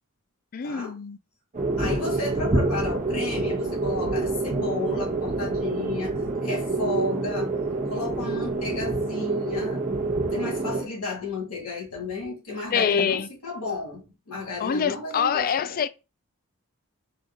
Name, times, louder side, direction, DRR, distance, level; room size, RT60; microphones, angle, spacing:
voice 1, 0.5-1.2 12.7-13.3 14.6-15.9, left 7 dB, 40° left, 0.4 m, -25 dB
sound 1, 1.5-10.8, right 2 dB, 35° right, 0.9 m, -27 dB
voice 2, 1.8-6.1 6.4-7.5 7.9-9.8 10.3-15.8, left 3 dB, 90° left, 2.5 m, -33 dB
5.1 x 2.4 x 3.8 m
head